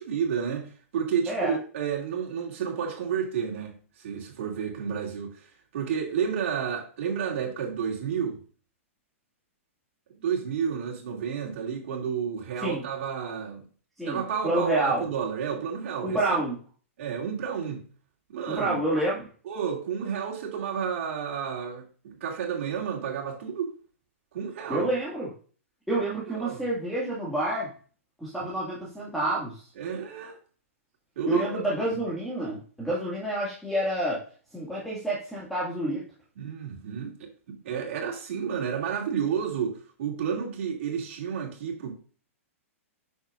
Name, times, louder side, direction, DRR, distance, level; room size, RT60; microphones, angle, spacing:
voice 1, 0.0-5.5 5.7-8.4 10.2-13.6 14.1-16.4 17.0-17.8 18.3-18.8 19.4-23.7 24.3-24.9 26.0-26.6 28.4-28.5 29.8-30.4 31.2-31.9 36.4-41.9, right 7 dB, 60° right, 2.7 m, -31 dB
voice 2, 14.0-15.0 16.0-16.6 18.6-19.3 24.7-25.3 25.9-27.7 28.2-29.7 31.3-34.2 34.5-36.0, right 1 dB, ahead, 2.2 m, -28 dB
8.8 x 6.6 x 2.6 m
hypercardioid pair, 130°, 8 cm